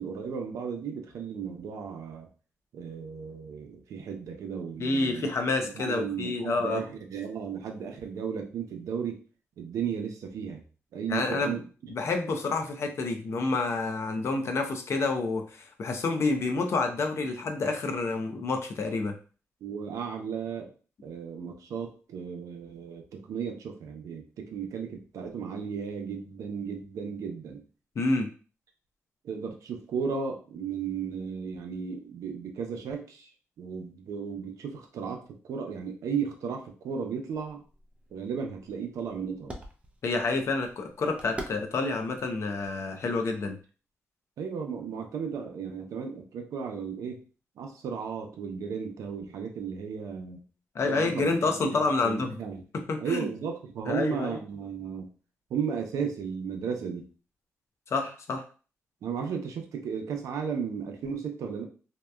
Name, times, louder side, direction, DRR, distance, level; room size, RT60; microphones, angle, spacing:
voice 1, 0.0-2.3 2.7-5.3 5.7-9.2 9.6-10.6 10.9-11.6 19.6-20.7 21.0-27.6 29.2-33.3 33.6-37.6 38.1-39.6 44.4-47.2 47.6-50.4 50.8-51.3 51.6-51.8 52.0-52.6 53.0-55.1 55.5-57.1 59.0-61.6, right 6 dB, 85° right, 3 dB, 0.5 m, -35 dB
voice 2, 4.8-6.8 11.1-11.6 11.9-19.1 28.0-28.3 40.0-43.6 50.8-52.4 52.7-53.3 53.9-54.4 57.9-58.4, left 3 dB, 60° left, 5 dB, 0.5 m, -28 dB
sound 1, 37.3-43.6, right 1 dB, 25° right, 0.5 m, -47 dB
2.8 x 2.1 x 2.2 m, 0.37 s
cardioid pair, 85°, 5 cm